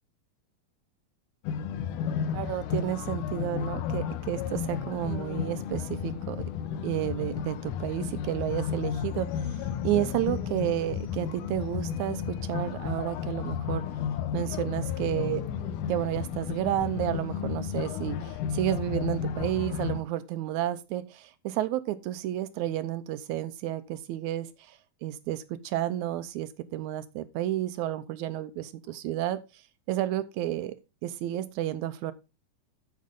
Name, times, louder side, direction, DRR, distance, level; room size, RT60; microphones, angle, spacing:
sound 1, 1.4-20.0, left 8 dB, 75° left, 2.1 m, -33 dB
voice 1, 2.3-6.4 6.8-13.9 14.3-15.4 15.9-29.4 29.9-30.7 31.0-32.1, right 13 dB, 75° right, 1.8 m, -31 dB
13.0 x 5.3 x 3.7 m
omnidirectional pair, 3.8 m